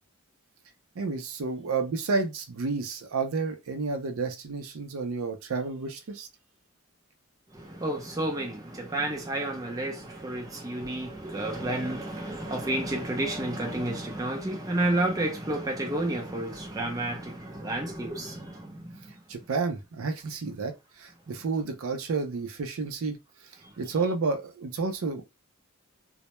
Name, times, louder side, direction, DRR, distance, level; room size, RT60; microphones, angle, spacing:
voice 1, 1.0-6.3 19.3-23.2 23.8-25.2, right 4 dB, 90° right, 0.5 m, -30 dB
voice 2, 7.5-18.9, right 1 dB, 15° right, 0.5 m, -31 dB
2.1 x 2.1 x 2.9 m
head